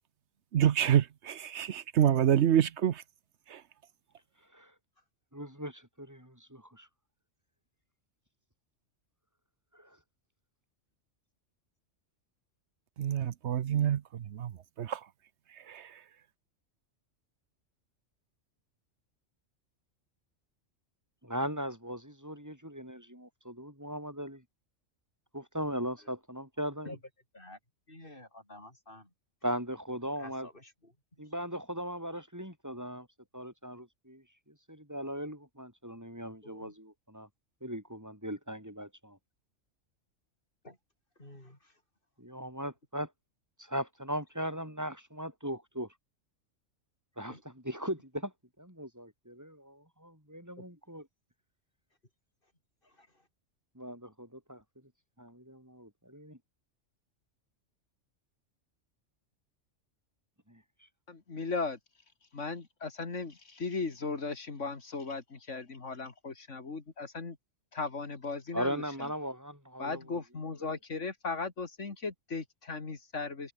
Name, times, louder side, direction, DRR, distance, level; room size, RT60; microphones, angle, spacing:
voice 1, 0.5-2.9 13.0-14.0 14.3-14.5 14.8-15.0, right 10 dB, 65° right, 1.0 m, -26 dB
voice 2, 5.3-6.9 9.7-10.0 21.2-24.4 25.3-27.0 29.4-30.5 31.2-33.1 33.3-34.2 34.7-37.3 37.6-39.2 42.2-43.1 43.6-45.9 47.2-48.3 48.6-51.1 53.7-54.6 55.2-56.4 60.5-60.6 68.5-70.2, equal, 15° right, 6.6 m, -38 dB
voice 3, 27.9-29.1 30.2-30.7 36.4-36.7 40.6-40.8 41.2-41.6 47.3-47.4 53.0-53.1, left 1 dB, 45° left, 7.8 m, -49 dB
voice 4, 61.1-61.8 62.3-67.4 67.7-69.1 69.8-73.5, left 4 dB, 75° left, 2.7 m, -37 dB
omnidirectional pair, 1.3 m